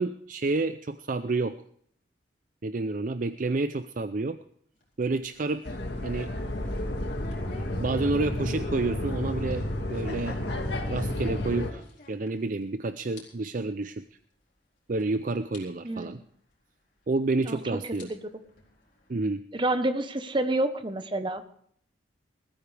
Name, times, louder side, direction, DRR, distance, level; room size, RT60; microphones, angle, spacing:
voice 1, 0.0-1.6 2.6-4.4 5.0-5.7 6.0-6.3 7.8-9.6 9.9-10.4 10.9-14.0 14.9-16.2 17.1-18.1 19.1-19.4, right 3 dB, 45° right, 11 dB, 0.5 m, -29 dB
sound 1, 4.7-12.7 12.9-13.2 13.5-13.7 14.4-14.5 15.0-15.1 15.5-15.6 17.0-17.1 17.8-19.2, left 2 dB, 45° left, 4.3 m, -51 dB
sound 2, 5.6-11.7, left 1 dB, 65° left, 2.0 m, -31 dB
voice 2, 15.8-16.2 17.5-17.6 18.0-18.2 19.5-21.4, right 1 dB, 25° right, 10 dB, 1.0 m, -28 dB
20.5 x 14.0 x 3.4 m, 0.63 s
head